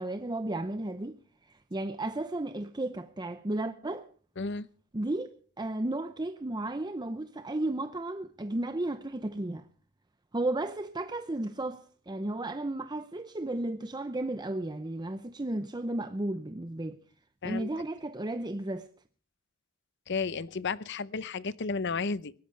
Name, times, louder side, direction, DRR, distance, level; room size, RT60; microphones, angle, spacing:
voice 1, 0.0-4.1 4.9-5.3 5.6-9.6 10.3-17.0 17.4-18.9, right 2 dB, 20° right, 0.7 m, -34 dB
voice 2, 4.4-4.7 17.4-17.7 20.1-22.3, left 4 dB, 60° left, 0.8 m, -33 dB
22.0 x 17.5 x 3.3 m
head